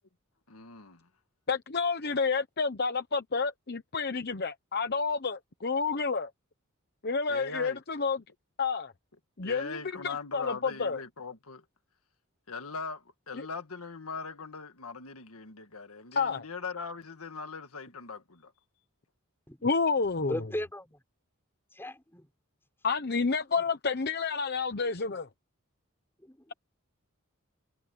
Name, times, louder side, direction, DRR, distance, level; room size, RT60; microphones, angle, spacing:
voice 1, 0.5-1.1 7.3-7.8 9.4-11.6 12.5-18.5, left 4 dB, 80° left, 1.8 m, -40 dB
voice 2, 1.5-6.3 7.0-8.2 8.6-8.9 9.4-11.0 13.3-13.5 16.1-16.4 19.6-20.4 22.8-25.3, left 4 dB, 50° left, 0.9 m, -30 dB
voice 3, 20.2-21.0 21.7-22.3 23.5-23.6 25.0-25.2 26.2-26.5, left 1 dB, 10° left, 5.9 m, -38 dB
head